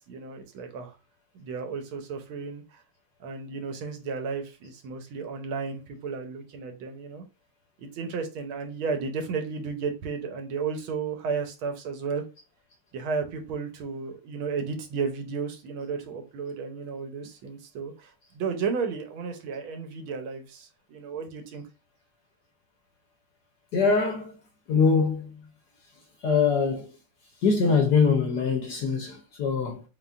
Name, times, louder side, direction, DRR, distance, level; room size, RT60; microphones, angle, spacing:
voice 1, 0.1-1.0 1.3-2.8 3.2-7.2 7.8-12.2 12.9-21.6, right 5 dB, 75° right, 1.5 m, -33 dB
voice 2, 23.7-24.3 24.7-25.3 26.2-26.9 27.4-29.8, left 5 dB, 65° left, 1.1 m, -23 dB
4.1 x 3.8 x 2.4 m
omnidirectional pair, 2.4 m